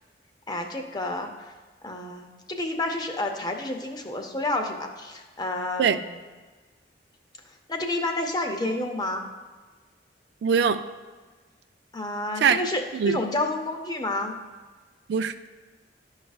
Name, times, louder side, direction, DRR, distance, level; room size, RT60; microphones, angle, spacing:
voice 1, 0.5-1.5 1.8-6.2 7.7-9.2 11.9-14.3, left 2 dB, 25° left, 4 dB, 0.6 m, -30 dB
voice 2, 10.4-10.8 12.4-12.6 12.9-13.2 15.1-15.5, right 6 dB, 70° right, 10 dB, 0.3 m, -22 dB
11.0 x 4.8 x 2.4 m, 1.4 s
head